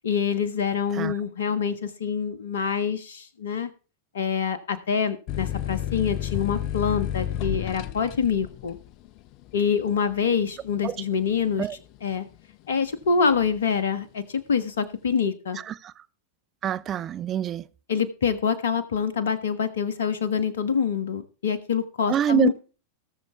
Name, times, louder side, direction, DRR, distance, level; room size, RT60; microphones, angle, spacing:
voice 1, 0.0-3.7 4.1-8.8 9.5-12.3 12.7-15.6 17.9-22.5, left 6 dB, 65° left, 1.3 m, -26 dB
sound 1, 5.3-12.5 13.0-13.7, left 12 dB, 40° left, 0.5 m, -32 dB
voice 2, 16.6-17.6 22.1-22.5, right 10 dB, 30° right, 0.6 m, -25 dB
18.0 x 6.8 x 3.4 m
figure-of-eight pair, 90°, 0 cm